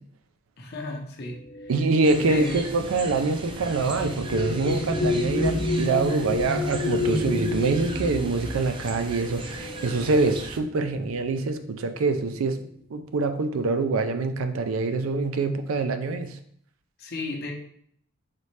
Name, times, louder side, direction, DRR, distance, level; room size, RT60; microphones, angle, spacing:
voice 1, 0.6-1.7 2.2-2.6 9.9-10.1 17.0-17.5, left 2 dB, 50° left, 2 dB, 0.7 m, -34 dB
sound 1, 1.5-10.4 11.4-11.5 11.9-12.4, left 2 dB, 85° left, 0.8 m, -30 dB
voice 2, 1.7-12.6 12.9-16.3, right 3 dB, 90° right, 8 dB, 0.4 m, -25 dB
sound 2, 2.0-10.6, right 2 dB, 25° right, 0.4 m, -38 dB
4.1 x 3.1 x 3.2 m, 0.66 s
head